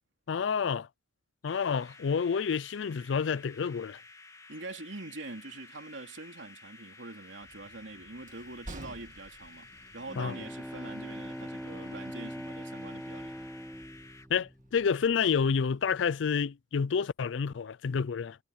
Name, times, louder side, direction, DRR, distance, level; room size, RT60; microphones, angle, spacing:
voice 1, 0.3-0.9 1.4-4.0 10.2-10.3 14.3-18.4, left 6 dB, 70° left, 0.4 m, -29 dB
sound 1, 1.4-14.3, left 3 dB, 15° left, 2.0 m, -53 dB
voice 2, 4.5-9.7 9.9-13.4, right 2 dB, 70° right, 3.1 m, -44 dB
Train, 7.4-16.0, right 1 dB, 40° right, 1.8 m, -53 dB
Bowed string instrument, 9.7-15.2, equal, ahead, 0.5 m, -42 dB
head